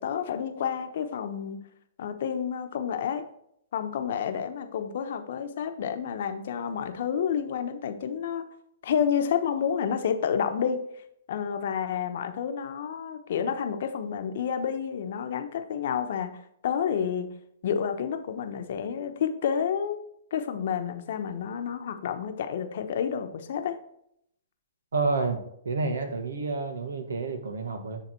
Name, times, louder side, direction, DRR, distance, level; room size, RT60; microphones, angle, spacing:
voice 1, 0.0-1.6 2.0-3.2 3.7-8.5 8.8-10.8 11.3-16.3 16.6-17.3 17.6-20.0 20.3-23.7, left 7 dB, 65° left, 7 dB, 1.0 m, -29 dB
voice 2, 24.9-28.0, right 4 dB, 85° right, 6 dB, 1.5 m, -29 dB
10.0 x 3.5 x 4.5 m, 0.73 s
hypercardioid pair, 135°, 0 cm